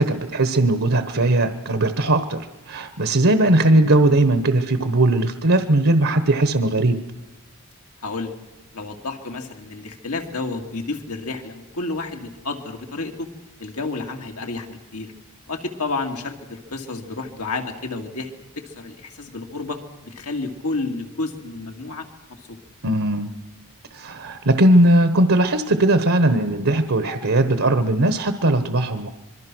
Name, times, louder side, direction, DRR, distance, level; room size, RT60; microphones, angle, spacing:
voice 1, 0.0-7.0 22.8-23.3 23.9-29.1, right 1 dB, 70° right, 9 dB, 1.1 m, -18 dB
voice 2, 8.0-8.4 8.7-13.3 13.6-15.1 15.5-18.3 18.6-22.6, left 3 dB, 90° left, 3 dB, 2.4 m, -31 dB
26.0 x 22.5 x 6.2 m, 1.0 s
head